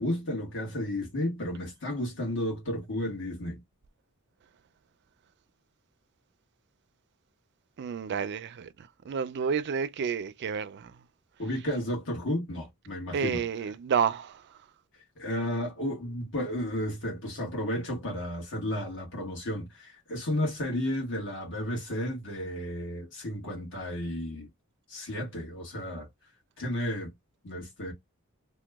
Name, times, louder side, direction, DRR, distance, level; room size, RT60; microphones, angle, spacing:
voice 1, 0.0-3.6 11.4-13.4 15.2-24.5 24.9-26.1 26.6-27.1 27.4-27.9, left 1 dB, 55° left, 1.4 m, -33 dB
voice 2, 7.8-8.7 9.1-10.9 13.1-14.4, right 6 dB, 50° right, 0.4 m, -30 dB
2.9 x 2.1 x 3.4 m
head